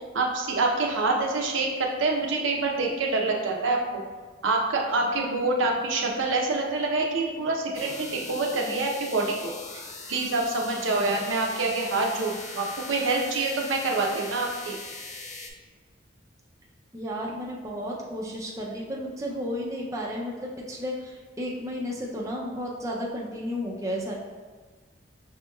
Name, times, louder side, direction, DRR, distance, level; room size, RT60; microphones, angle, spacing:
voice 1, 0.1-4.0 4.4-9.8 10.1-14.8, right 3 dB, 80° right, 0 dB, 0.6 m, -26 dB
Warp Speed, 7.7-15.5, left 3 dB, 40° left, 0.5 m, -40 dB
voice 2, 16.9-24.1, equal, 15° right, -3 dB, 0.4 m, -33 dB
6.0 x 2.9 x 2.3 m, 1.4 s
head